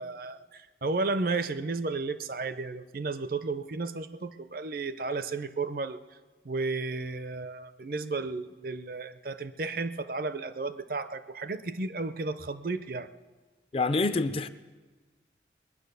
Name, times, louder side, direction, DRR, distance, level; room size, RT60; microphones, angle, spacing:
voice 1, 0.0-6.0 6.4-13.1, right 3 dB, 55° right, 12 dB, 0.6 m, -33 dB
voice 2, 13.7-14.5, left 3 dB, 30° left, 13 dB, 0.5 m, -26 dB
20.5 x 9.6 x 6.8 m, 1.3 s
head